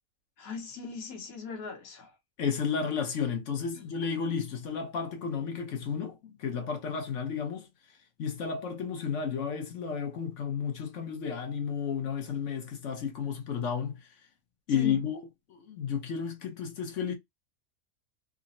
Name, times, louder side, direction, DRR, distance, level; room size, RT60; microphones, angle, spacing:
voice 1, 0.4-2.1 3.7-3.9 14.7-15.0, left 5 dB, 75° left, 1.5 m, -40 dB
voice 2, 2.4-7.7 8.2-14.1 14.7-15.2 15.5-17.1, left 6 dB, 60° left, 1.1 m, -32 dB
3.8 x 2.1 x 2.6 m
omnidirectional pair, 1.5 m